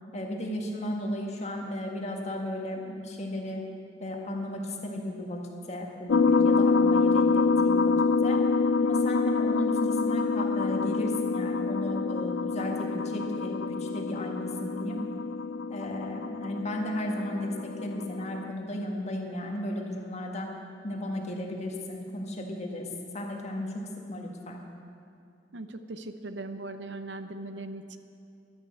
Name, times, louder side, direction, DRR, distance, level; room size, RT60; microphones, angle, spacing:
voice 1, 0.1-3.6 4.0-8.0 8.2-8.4 8.8-15.0 15.7-20.5 20.8-24.6, left 1 dB, 40° left, 1 dB, 1.7 m, -35 dB
sound 1, 6.1-18.5, left 4 dB, 75° left, 0.4 m, -26 dB
voice 2, 25.5-28.0, right 2 dB, 75° right, 9 dB, 0.8 m, -39 dB
12.0 x 10.5 x 7.8 m, 2.5 s
head